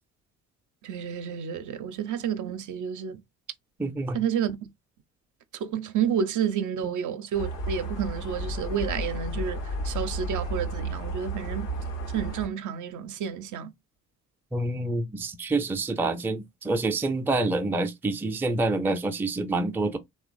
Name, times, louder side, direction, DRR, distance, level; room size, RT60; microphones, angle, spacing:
voice 1, 0.8-3.2 4.1-4.6 5.6-11.7 12.1-13.7, right 8 dB, 50° right, 0.6 m, -30 dB
voice 2, 3.8-4.2 6.8-6.9 14.5-20.0, right 2 dB, 5° right, 0.4 m, -27 dB
sound 1, 7.3-12.5, right 1 dB, 85° left, 0.7 m, -32 dB
2.9 x 2.1 x 2.5 m
hypercardioid pair, 50°, 39 cm